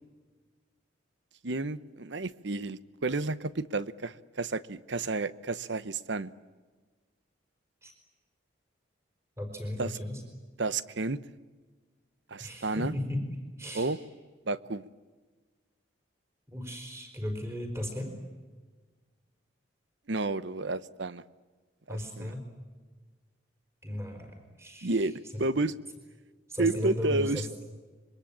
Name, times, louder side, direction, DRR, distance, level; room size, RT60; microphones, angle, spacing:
voice 1, 1.4-6.3 9.8-10.0 10.6-11.2 12.3-12.9 13.7-14.0 14.5-14.9 20.1-21.2 21.9-22.3 24.8-25.8 26.6-27.4, right 3 dB, 65° right, 16 dB, 0.9 m, -31 dB
voice 2, 9.4-10.2 12.4-13.3 13.6-14.0 16.5-18.1 21.9-22.4 23.8-25.4 26.5-27.5, left 1 dB, 15° right, 4 dB, 4.7 m, -36 dB
26.0 x 23.0 x 8.7 m, 1.4 s
head